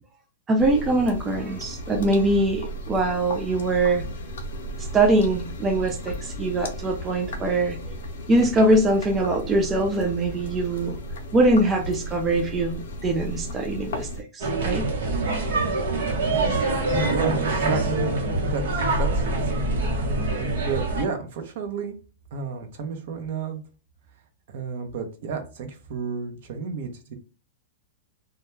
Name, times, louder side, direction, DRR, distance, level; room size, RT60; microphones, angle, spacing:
voice 1, 0.5-4.0 4.9-7.8 8.3-11.0 11.3-14.1 14.3-14.9, right 2 dB, 15° right, 3 dB, 0.3 m, -22 dB
sound 1, 0.6-14.2, equal, 75° left, 0.5 m, -35 dB
sound 2, 14.4-21.0, right 2 dB, 85° right, 0.9 m, -24 dB
voice 2, 17.1-18.1 18.5-19.7 20.3-22.0 22.3-23.6 24.5-27.1, right 6 dB, 60° right, 6 dB, 0.6 m, -32 dB
2.2 x 2.2 x 3.0 m, 0.35 s
supercardioid pair, 160°, 0 cm